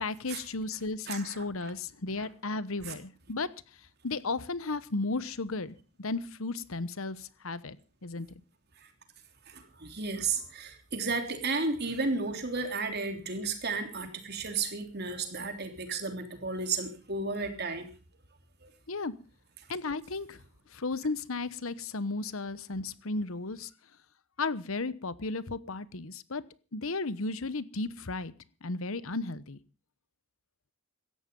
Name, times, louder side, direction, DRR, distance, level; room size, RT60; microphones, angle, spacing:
voice 1, 0.0-3.5 4.0-7.8 8.0-8.3 18.9-19.1 19.7-20.4 20.7-23.7 24.4-26.4 26.7-28.3 28.6-29.6, left 3 dB, 70° left, 16 dB, 1.1 m, -34 dB
voice 2, 1.1-1.4 2.2-2.3 2.8-2.9 8.8-8.9 9.5-17.9 18.6-18.7, right 4 dB, 45° right, 6 dB, 3.3 m, -33 dB
17.5 x 14.0 x 5.3 m, 0.36 s
head